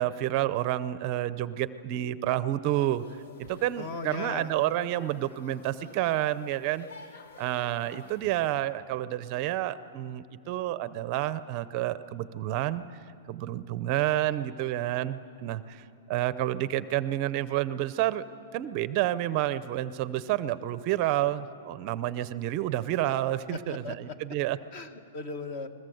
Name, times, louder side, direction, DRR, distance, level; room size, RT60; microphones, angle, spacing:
voice 1, 0.0-3.0 3.4-6.9 7.4-12.8 13.3-18.2 18.5-24.6, right 13 dB, 35° right, 15 dB, 0.6 m, -29 dB
sound 1, 2.9-8.5, left 3 dB, 65° left, 2.7 m, -52 dB
voice 2, 3.8-4.5 23.5-24.2 24.7-25.7, left 3 dB, 40° left, 9 dB, 1.7 m, -37 dB
29.0 x 21.0 x 7.8 m, 2.7 s
hypercardioid pair, 165°, 0 cm